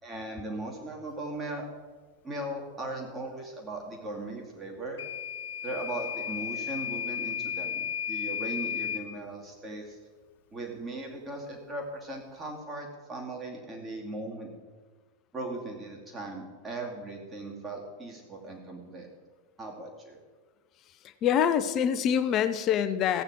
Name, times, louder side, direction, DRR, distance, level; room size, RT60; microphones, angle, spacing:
voice 1, 0.0-1.7 2.2-5.0 5.6-10.0 10.5-14.5 15.3-19.1 19.6-20.2, right 2 dB, 15° right, -1 dB, 2.4 m, -38 dB
Microwave oven / Alarm, 5.0-9.1, left 8 dB, 60° left, 0.9 m, -34 dB
voice 2, 21.2-23.2, left 8 dB, 35° left, 12 dB, 0.7 m, -25 dB
15.0 x 8.9 x 4.6 m, 1.4 s
figure-of-eight pair, 90°, 0 cm